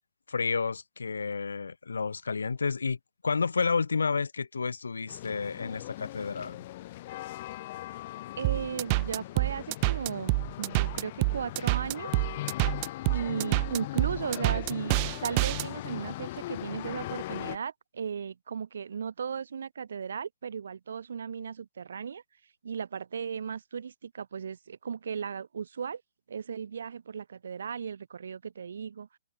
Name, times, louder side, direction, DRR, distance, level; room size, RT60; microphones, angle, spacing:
voice 1, 0.3-3.0 3.2-6.6, left 5 dB, 75° left, 0.8 m, -30 dB
sound 1, 5.1-17.6, left 16 dB, 45° left, 3.5 m, -39 dB
sound 2, 8.4-15.7, right 28 dB, 35° right, 1.1 m, -27 dB
voice 2, 8.4-12.3 13.1-22.2 22.6-26.0 26.3-29.1, right 7 dB, 65° right, 2.5 m, -36 dB
figure-of-eight pair, 120°, 0 cm